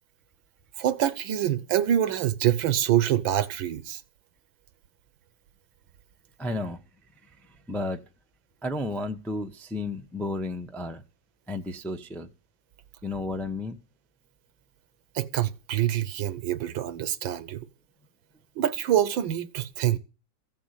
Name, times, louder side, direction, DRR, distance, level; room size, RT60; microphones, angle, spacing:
voice 1, 0.8-4.0 15.2-17.6 18.6-20.0, right 11 dB, 75° right, 1.6 m, -25 dB
voice 2, 6.4-6.8 7.7-8.0 8.6-11.0 11.5-12.3 13.0-13.8, left 2 dB, ahead, 0.5 m, -32 dB
15.0 x 7.2 x 8.2 m
omnidirectional pair, 2.2 m